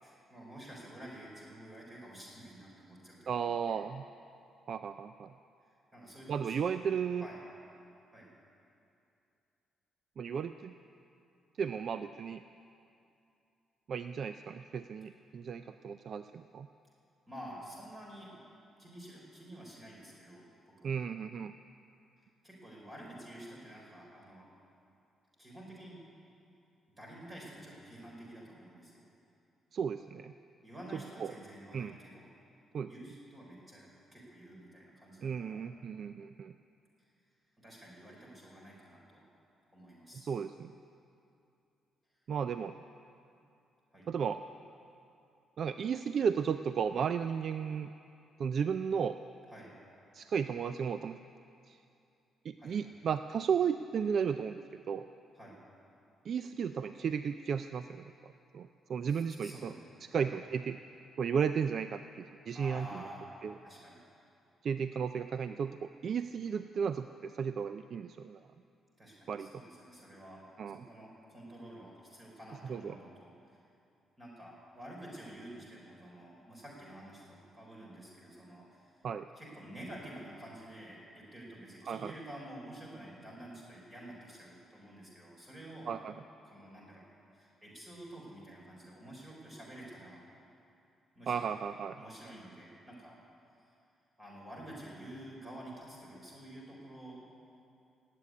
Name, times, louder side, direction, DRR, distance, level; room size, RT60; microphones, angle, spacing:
voice 1, 0.0-3.9 5.6-6.6 7.2-7.4 8.1-8.3 11.6-11.7 17.3-18.4 18.8-21.0 22.4-24.6 25.4-26.0 27.0-29.0 30.6-32.3 32.9-35.6 37.6-39.3 39.7-40.3 43.9-44.1 49.5-49.7 52.6-52.8 55.3-55.6 59.1-60.3 62.5-63.3 63.6-64.0 69.0-73.6 74.2-78.9 79.4-85.9 86.4-87.0 87.3-90.2 91.1-91.5 91.9-93.2 94.2-97.2, right 1 dB, 25° right, -3 dB, 4.2 m, -50 dB
voice 2, 3.3-4.0 4.7-5.3 6.3-7.3 10.2-10.7 11.6-12.4 13.9-16.7 20.8-21.5 29.7-30.3 30.9-31.3 31.7-32.0 32.7-32.9 35.2-36.5 40.1-40.7 42.3-42.7 44.1-44.4 45.6-47.9 48.4-49.2 50.1-51.2 51.7-51.8 52.4-55.1 56.3-59.7 60.1-60.8 61.2-62.9 63.4-63.5 64.6-68.4 69.3-69.5 70.6-70.8 72.7-73.0 79.0-79.3 81.9-82.1 85.9-86.1 91.3-92.0, right 7 dB, 55° right, 10 dB, 0.4 m, -34 dB
16.5 x 8.5 x 9.6 m, 2.6 s
cardioid pair, 90°, 0 cm